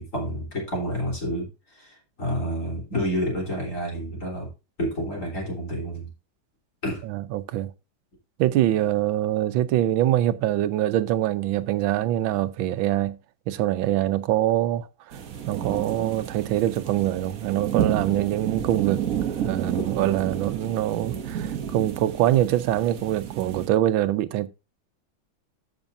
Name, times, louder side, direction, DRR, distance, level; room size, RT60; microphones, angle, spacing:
voice 1, 0.0-4.5 4.8-6.1 6.8-7.0, equal, 40° left, 4.1 m, -29 dB
voice 2, 7.0-7.7 8.4-13.2 13.5-24.5, right 13 dB, 90° right, 1.5 m, -24 dB
sound 1, 15.1-23.7, right 9 dB, 50° right, 1.2 m, -31 dB
14.0 x 6.1 x 2.7 m
omnidirectional pair, 2.1 m